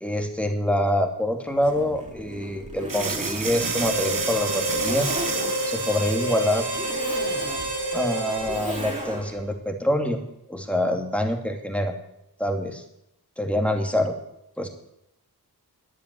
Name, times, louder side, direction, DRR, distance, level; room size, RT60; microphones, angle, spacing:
voice 1, 0.0-5.1 5.7-6.7 7.9-10.2 10.5-12.0 12.4-12.8 13.4-14.1 14.6-14.7, left 1 dB, 5° left, 4 dB, 2.2 m, -25 dB
Zipper (clothing), 1.5-9.4, equal, 20° right, 3.2 m, -36 dB
sound 1, 2.9-8.6, right 6 dB, 55° right, 0.8 m, -32 dB
Harmonica, 3.5-9.5, right 1 dB, 75° right, 2.7 m, -29 dB
11.5 x 9.0 x 9.5 m, 0.83 s
wide cardioid pair, 70°, 40 cm